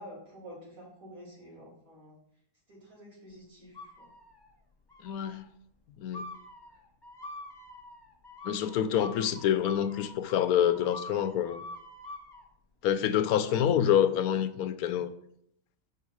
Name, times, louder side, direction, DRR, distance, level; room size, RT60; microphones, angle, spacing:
voice 1, 0.0-2.1 2.7-4.1 13.5-13.6, equal, 70° right, -5 dB, 3.3 m, -49 dB
sound 1, 3.7-4.5 4.9-5.4 6.1-12.4, left 1 dB, 20° left, 0.8 m, -46 dB
voice 2, 5.0-5.4 6.0-6.2 8.4-11.6 12.8-15.1, left 9 dB, 80° left, 12 dB, 1.1 m, -27 dB
6.9 x 4.9 x 4.7 m, 0.70 s
omnidirectional pair, 1.5 m